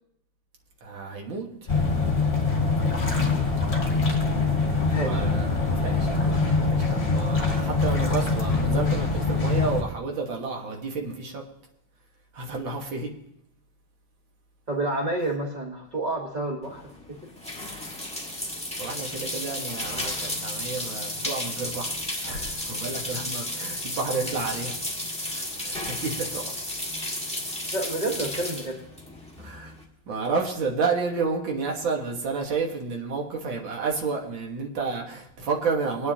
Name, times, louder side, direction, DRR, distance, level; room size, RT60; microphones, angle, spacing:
voice 1, 0.8-1.5 5.0-11.4 12.3-13.1 18.8-24.8 25.2-26.5 29.4-29.7 30.1-36.1, right 4 dB, 65° right, 0 dB, 2.3 m, -31 dB
sound 1, 1.7-9.8, left 3 dB, 30° left, 2.2 m, -24 dB
voice 2, 4.8-5.3 14.7-16.8 17.1-17.2 27.7-28.8, right 2 dB, 30° right, -1 dB, 0.9 m, -29 dB
sound 2, 16.6-29.8, left 1 dB, 5° left, 1.3 m, -33 dB
21.5 x 9.8 x 2.9 m, 0.80 s
omnidirectional pair, 2.3 m